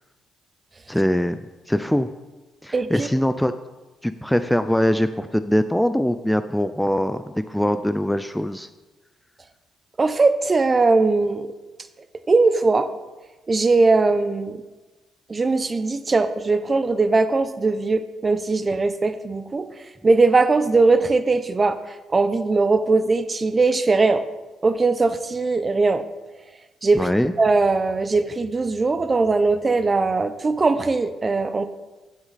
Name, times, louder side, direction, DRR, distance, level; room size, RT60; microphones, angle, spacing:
voice 1, 0.9-1.4 1.7-2.1 2.6-3.5 4.0-8.7 26.9-27.3, equal, 5° left, 11 dB, 0.4 m, -22 dB
voice 2, 2.7-3.1 10.0-11.5 12.3-12.9 13.5-14.6 15.3-19.7 20.0-21.8 22.1-24.2 24.6-26.0 26.8-27.1 27.4-31.7, right 3 dB, 30° right, 10 dB, 0.7 m, -20 dB
15.0 x 6.2 x 4.1 m, 1.2 s
cardioid pair, 90°, 0 cm